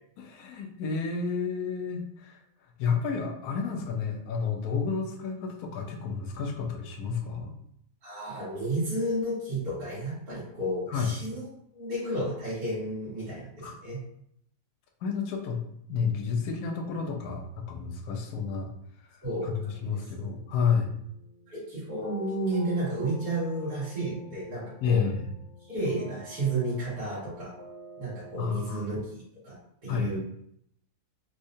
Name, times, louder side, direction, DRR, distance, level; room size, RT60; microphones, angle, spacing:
voice 1, 0.2-2.4 2.8-7.5 10.9-11.1 13.6-13.7 15.0-15.6 15.9-18.7 19.1-20.9 24.8-25.3 28.4-28.8 29.9-30.1, left 6 dB, 75° left, 2 dB, 1.1 m, -30 dB
voice 2, 8.0-11.5 11.7-14.0 19.2-19.7 20.0-20.3 21.5-25.0 25.7-27.5 28.0-29.6 29.8-30.2, right 1 dB, 80° right, -10 dB, 2.1 m, -32 dB
sound 1, 19.5-28.9, left 1 dB, 10° left, 0.4 m, -48 dB
4.5 x 2.1 x 2.6 m, 0.72 s
omnidirectional pair, 1.7 m